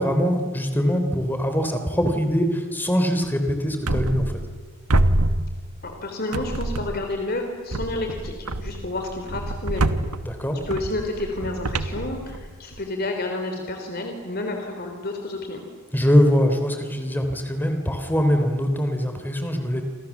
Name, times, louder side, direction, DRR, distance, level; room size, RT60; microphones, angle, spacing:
voice 1, 0.0-4.2 10.3-10.6 15.9-19.8, equal, 10° left, 6 dB, 3.3 m, -22 dB
sound 1, 3.9-4.6 4.9-6.0 6.3-7.2 7.7-12.8, right 1 dB, 90° right, 1.3 m, -26 dB
voice 2, 5.8-9.9 10.7-15.7, left 2 dB, 45° left, 4 dB, 3.4 m, -30 dB
28.0 x 27.5 x 7.3 m, 1.5 s
head